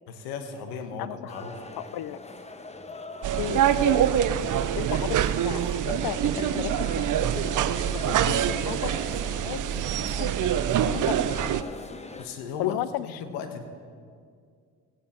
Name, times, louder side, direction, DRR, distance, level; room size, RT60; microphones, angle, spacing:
voice 1, 0.1-1.6 12.2-12.8 13.0-13.6, left 6 dB, 85° left, 7 dB, 1.3 m, -36 dB
voice 2, 1.0-1.4 1.8-2.2 3.4-4.1 4.8-7.3 7.9-8.9 9.4-11.5 12.6-13.2, left 14 dB, 65° left, 16 dB, 0.5 m, -35 dB
sound 1, 1.3-12.3, left 3 dB, 15° left, 0.9 m, -41 dB
sound 2, 3.2-11.6, right 10 dB, 50° right, 0.6 m, -25 dB
15.5 x 9.3 x 4.3 m, 2.1 s
supercardioid pair, 65°, 40 cm